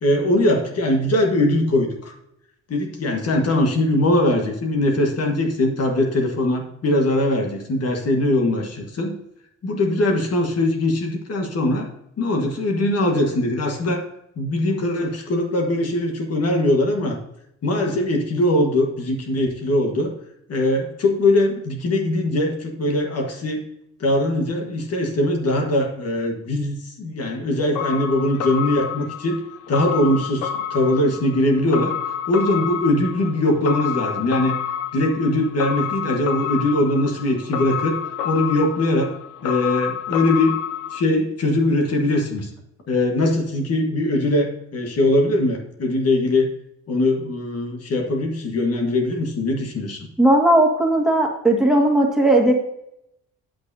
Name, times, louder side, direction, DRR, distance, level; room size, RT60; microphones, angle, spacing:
voice 1, 0.0-2.1 2.7-9.1 9.6-11.9 12.2-14.0 14.4-17.2 17.6-20.1 20.5-23.6 24.0-29.4 29.7-31.9 32.3-34.5 34.9-38.0 38.2-39.1 39.4-40.6 40.9-42.5 42.9-46.5 46.9-50.1, left 1 dB, 55° left, 2 dB, 1.4 m, -21 dB
sound 1, 27.7-41.0, left 8 dB, 90° left, 0.5 m, -29 dB
voice 2, 50.2-52.5, right 1 dB, ahead, 1 dB, 1.7 m, -17 dB
8.8 x 7.9 x 2.7 m, 0.79 s
cardioid pair, 90°, 30 cm